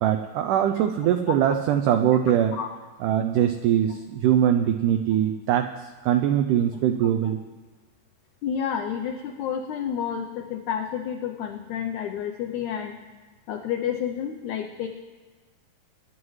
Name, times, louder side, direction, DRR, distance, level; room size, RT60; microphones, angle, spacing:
voice 1, 0.0-2.5 3.0-7.4, right 10 dB, 90° right, 6 dB, 1.8 m, -22 dB
voice 2, 8.4-12.9 13.5-14.9, left 8 dB, 90° left, 5 dB, 1.7 m, -30 dB
23.0 x 11.0 x 3.2 m, 1.3 s
omnidirectional pair, 4.3 m